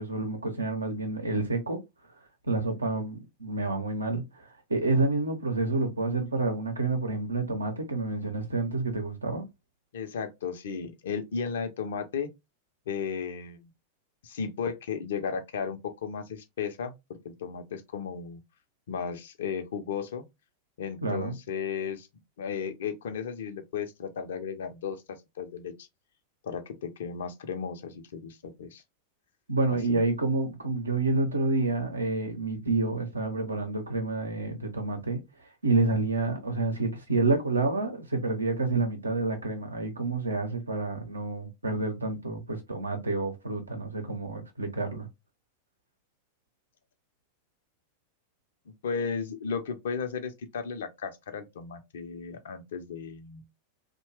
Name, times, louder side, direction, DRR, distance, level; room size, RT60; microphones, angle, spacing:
voice 1, 0.0-1.8 2.5-9.4 21.0-21.4 29.5-35.2 35.6-45.1, right 3 dB, 80° right, 0.7 m, -29 dB
voice 2, 9.9-12.3 12.9-13.7 14.2-18.4 18.9-20.2 20.8-22.1 22.4-25.9 26.4-28.8 29.7-30.0 48.8-53.4, left 6 dB, 60° left, 0.5 m, -35 dB
2.8 x 2.1 x 3.1 m
figure-of-eight pair, 90°, 0 cm